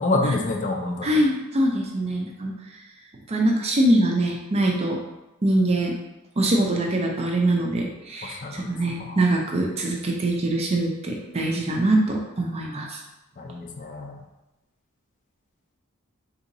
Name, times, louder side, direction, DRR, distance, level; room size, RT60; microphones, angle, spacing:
voice 1, 0.0-1.2 8.2-8.7 9.0-9.2 13.4-14.2, left 2 dB, 35° left, 2 dB, 0.4 m, -27 dB
voice 2, 1.0-2.5 3.3-5.0 5.4-5.9 6.4-13.0, right 1 dB, 30° right, 0 dB, 0.4 m, -23 dB
3.8 x 2.7 x 2.6 m, 0.99 s
head